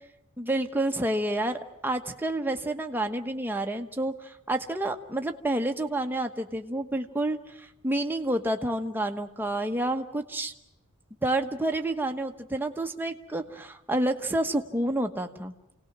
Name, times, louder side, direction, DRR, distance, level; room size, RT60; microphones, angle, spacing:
voice 1, 0.4-10.5 11.2-15.5, right 1 dB, 10° right, 4 dB, 1.1 m, -29 dB
29.0 x 18.5 x 6.1 m, 0.83 s
head